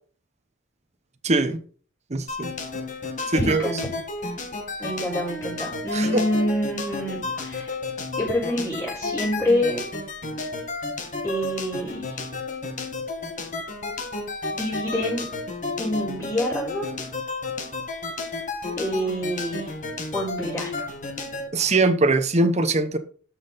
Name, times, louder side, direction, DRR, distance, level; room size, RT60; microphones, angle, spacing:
voice 1, 1.2-1.6 2.1-2.5 3.3-3.7 5.9-6.2 21.5-23.0, right 2 dB, 35° right, 0.9 m, -21 dB
sound 1, 2.3-21.5, left 3 dB, 40° left, 1.6 m, -32 dB
voice 2, 3.3-3.8 4.8-7.8 8.2-9.8 11.2-12.3 14.5-15.3 15.8-16.9 18.8-19.7 20.1-20.8, equal, 15° left, 4.9 m, -27 dB
12.0 x 6.0 x 4.1 m
head